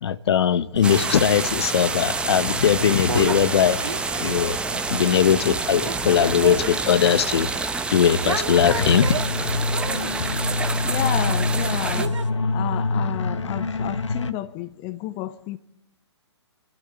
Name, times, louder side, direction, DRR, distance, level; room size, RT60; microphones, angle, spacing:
voice 1, 0.0-4.6 4.9-7.6 7.9-9.2 10.2-10.3, left 8 dB, 60° left, 1.3 m, -20 dB
sound 1, 0.8-12.1, right 4 dB, 5° right, 1.2 m, -28 dB
sound 2, 0.8-12.3, right 4 dB, 90° right, 2.2 m, -35 dB
sound 3, 8.6-14.3, left 3 dB, 85° left, 1.3 m, -26 dB
voice 2, 10.8-12.2 12.5-15.6, left 14 dB, 30° left, 0.9 m, -31 dB
30.0 x 12.5 x 9.8 m
hypercardioid pair, 130°, 15 cm